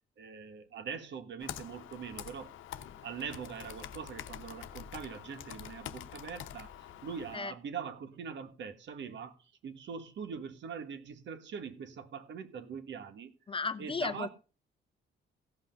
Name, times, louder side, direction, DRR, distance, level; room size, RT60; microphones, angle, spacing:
voice 1, 0.2-2.5 3.0-13.4 13.8-14.3, right 6 dB, 65° right, 1.5 m, -42 dB
Computer keyboard, 1.4-7.4, left 11 dB, 80° left, 0.9 m, -46 dB
voice 2, 13.5-14.3, left 4 dB, 25° left, 0.6 m, -34 dB
15.5 x 5.7 x 5.2 m
cardioid pair, 90°, 20 cm